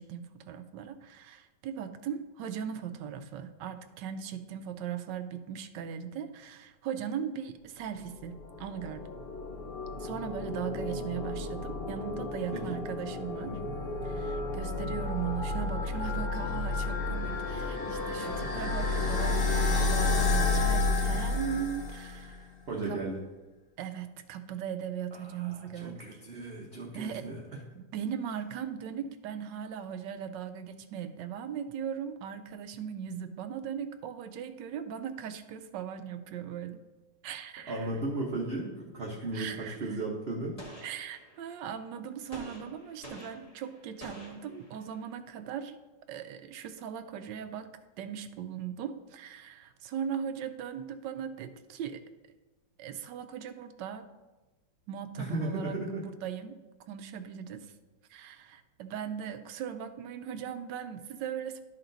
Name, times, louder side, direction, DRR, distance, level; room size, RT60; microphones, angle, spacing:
voice 1, 0.0-9.1 10.0-13.6 14.0-22.5 22.9-23.0 23.8-26.0 26.9-27.3 27.7-36.8 37.2-37.9 39.3-40.0 40.8-45.8 46.1-47.7 48.0-52.0 52.8-54.1 54.9-56.6 56.9-57.7 58.1-61.6, right 8 dB, 75° right, 9 dB, 1.3 m, -39 dB
sound 1, 8.1-22.3, left 3 dB, 50° left, 0.7 m, -31 dB
voice 2, 13.4-13.7 18.2-18.5 22.7-23.2 25.1-27.4 37.7-40.6 55.2-56.0, right 2 dB, 40° right, -3 dB, 1.0 m, -36 dB
Gunshot gunfire, 40.6-41.6 42.3-45.1, right 1 dB, 20° left, 2.1 m, -49 dB
12.0 x 4.3 x 3.9 m, 1.1 s
omnidirectional pair, 2.0 m